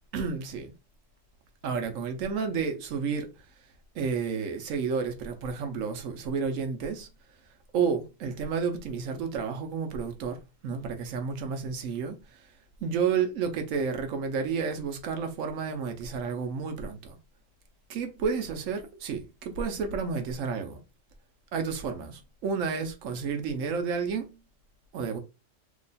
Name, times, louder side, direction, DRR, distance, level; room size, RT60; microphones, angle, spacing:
voice 1, 0.1-0.7 1.6-3.3 3.9-7.1 7.7-10.4 10.6-12.2 12.8-17.2 17.9-20.8 21.5-24.3 24.9-25.2, right 5 dB, 85° right, 1.1 m, -31 dB
2.9 x 2.2 x 4.0 m
omnidirectional pair, 1.3 m